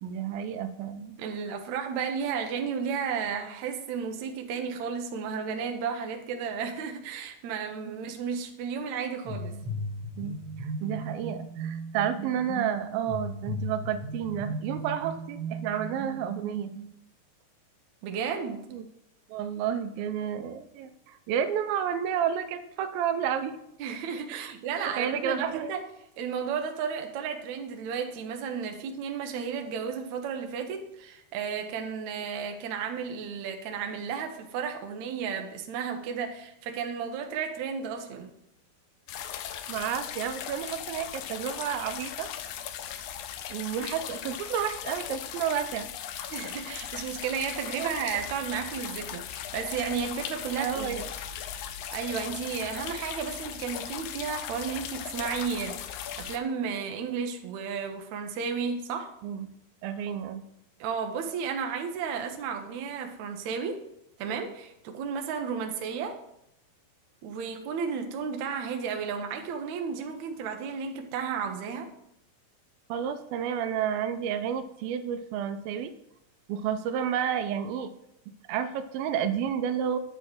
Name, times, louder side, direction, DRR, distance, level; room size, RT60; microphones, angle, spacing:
voice 1, 0.0-1.2 7.9-8.0 10.2-16.7 18.7-18.9 19.3-23.6 24.3-24.5 24.9-25.7 39.7-42.3 43.5-45.9 47.8-48.0 50.6-51.0 59.2-59.5 59.8-60.4 72.9-75.9 76.5-77.9 78.5-80.0, right 8 dB, 90° right, 10 dB, 2.4 m, -31 dB
voice 2, 1.2-9.5 18.0-18.7 23.8-25.8 26.2-38.3 43.8-43.9 46.3-51.0 51.9-55.8 56.2-59.1 60.8-63.8 64.2-66.2 67.2-71.9, right 6 dB, 70° right, 4 dB, 1.9 m, -33 dB
sound 1, 9.2-16.9, right 2 dB, 35° right, 2.1 m, -36 dB
sound 2, 39.1-56.4, left 9 dB, 85° left, 1.7 m, -38 dB
10.0 x 4.2 x 7.1 m, 0.79 s
omnidirectional pair, 4.2 m